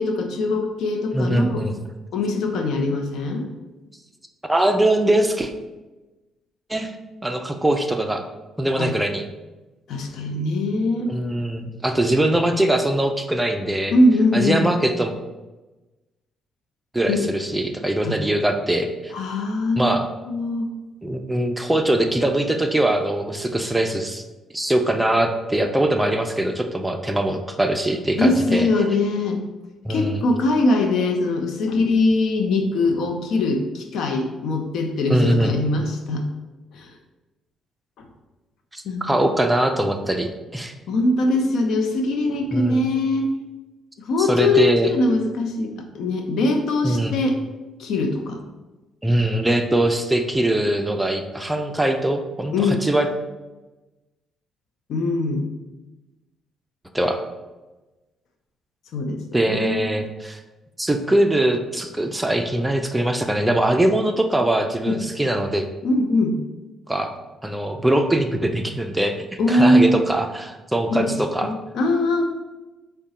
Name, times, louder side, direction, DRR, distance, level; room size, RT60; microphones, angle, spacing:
voice 1, 0.0-1.6 2.1-3.5 8.8-8.9 9.9-11.1 13.9-14.7 17.1-17.3 18.0-18.2 19.1-20.0 20.3-20.7 28.1-29.4 29.9-36.2 36.7-36.9 38.0-38.1 38.8-39.2 40.9-43.3 44.0-47.4 47.8-48.4 52.5-52.8 54.9-55.5 58.9-59.9 64.8-65.0 65.8-66.4 69.4-70.0 70.9-71.2 71.4-72.2, left 2 dB, 75° left, 4 dB, 0.6 m, -22 dB
voice 2, 1.1-1.7 4.4-5.5 6.7-6.9 7.2-8.2 8.6-9.2 11.1-13.9 14.3-15.1 16.9-19.1 19.8-20.1 21.0-24.2 24.5-28.7 29.8-30.2 35.1-35.5 38.7-40.7 42.5-42.9 44.2-44.9 46.8-47.1 49.0-53.1 56.9-57.2 59.3-60.4 60.8-65.6 66.9-67.1 67.4-71.5, right 1 dB, 10° right, 5 dB, 0.4 m, -22 dB
4.7 x 2.2 x 4.1 m, 1.1 s
cardioid pair, 90°, 0 cm